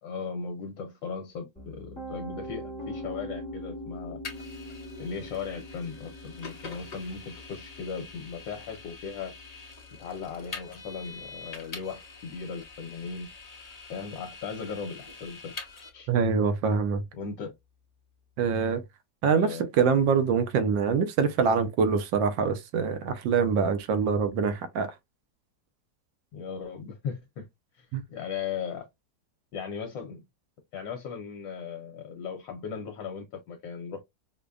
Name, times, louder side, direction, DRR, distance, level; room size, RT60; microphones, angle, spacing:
voice 1, 0.0-4.2 5.0-9.3 10.0-13.3 13.9-15.6 15.9-16.1 17.1-17.5 19.3-19.7 26.3-27.5 27.7-28.9 29.5-30.2 30.7-34.0, left 6 dB, 75° left, 1.3 m, -37 dB
Piano, 1.6-13.5, equal, 5° left, 0.6 m, -44 dB
Vehicle, 4.2-15.9, left 3 dB, 50° left, 0.4 m, -45 dB
voice 2, 16.1-17.0 18.4-18.8 19.2-24.9 27.9-28.0, right 6 dB, 75° right, 1.3 m, -24 dB
5.1 x 2.1 x 2.3 m
omnidirectional pair, 2.1 m